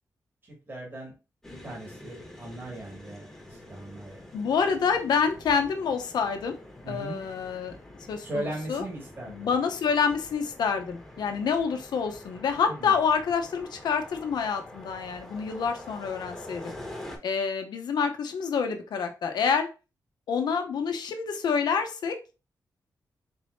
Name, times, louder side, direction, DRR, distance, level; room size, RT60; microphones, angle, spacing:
voice 1, 0.4-1.1 1.6-4.2 6.8-7.2 8.2-9.5 12.7-12.9, right 1 dB, 30° right, -2 dB, 2.0 m, -38 dB
sound 1, 1.4-17.2, left 1 dB, 5° left, 1.5 m, -46 dB
voice 2, 4.3-6.6 6.9-7.7 8.1-8.8 9.3-16.7 17.2-19.7 20.3-22.2, left 6 dB, 85° left, 6 dB, 0.8 m, -27 dB
4.4 x 3.4 x 2.7 m, 0.30 s
cardioid pair, 85°, 7 cm